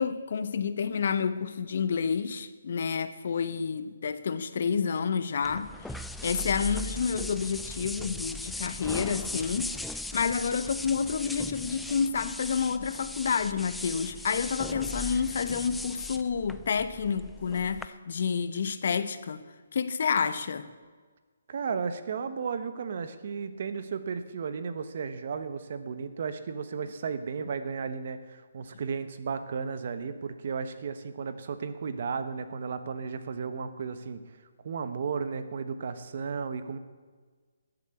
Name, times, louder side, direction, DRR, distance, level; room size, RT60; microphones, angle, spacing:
voice 1, 0.0-19.4 19.7-20.7, left 6 dB, 55° left, 12 dB, 0.9 m, -29 dB
sound 1, 5.4-17.9, left 2 dB, 5° left, 0.3 m, -38 dB
voice 2, 21.5-34.2 34.6-36.8, right 5 dB, 50° right, 11 dB, 1.1 m, -34 dB
13.5 x 7.9 x 8.4 m, 1.5 s
hypercardioid pair, 160°, 0 cm